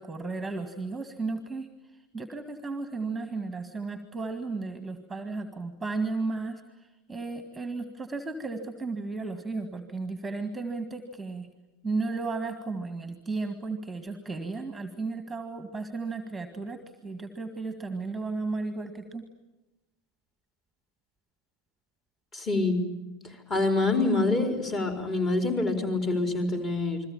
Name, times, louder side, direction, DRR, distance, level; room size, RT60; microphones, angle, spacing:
voice 1, 0.0-1.7 2.1-11.5 11.8-19.3, right 3 dB, 5° right, 9 dB, 1.9 m, -34 dB
voice 2, 22.3-22.8 23.5-27.0, left 2 dB, 25° left, 4 dB, 4.6 m, -26 dB
29.0 x 22.0 x 8.8 m, 1.0 s
figure-of-eight pair, 90°, 0 cm